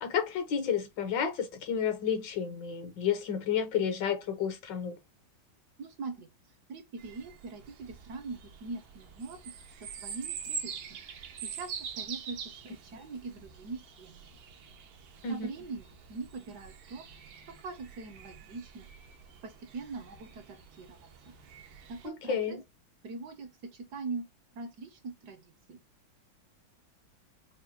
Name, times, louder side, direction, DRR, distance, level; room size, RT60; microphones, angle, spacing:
voice 1, 0.0-5.0 15.2-15.5 22.0-22.6, left 7 dB, 70° left, 1.3 m, -31 dB
voice 2, 5.8-6.3 6.7-9.5 9.8-11.0 11.4-11.7 12.0-14.2 15.3-17.0 17.6-18.9 19.4-21.0 21.9-22.6 23.0-24.3 24.5-25.8, right 4 dB, 70° right, 1.1 m, -42 dB
sound 1, 7.0-22.1, right 6 dB, 90° right, 1.6 m, -45 dB
5.6 x 2.1 x 2.7 m
omnidirectional pair, 2.2 m